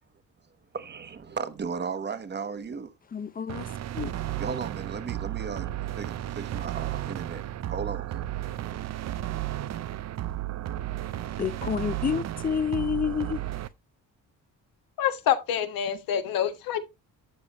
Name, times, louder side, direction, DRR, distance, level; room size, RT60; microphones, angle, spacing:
voice 1, 0.7-2.9 4.4-5.7 5.9-7.4 7.7-8.0, right 6 dB, 30° right, 1.0 m, -35 dB
voice 2, 3.1-3.7 3.9-4.1 11.4-13.4, left 7 dB, 25° left, 0.6 m, -29 dB
sound 1, 3.5-13.7, right 13 dB, 50° right, 0.6 m, -33 dB
voice 3, 15.0-16.8, left 9 dB, 85° left, 1.4 m, -26 dB
12.0 x 7.1 x 2.9 m
cardioid pair, 140°, 34 cm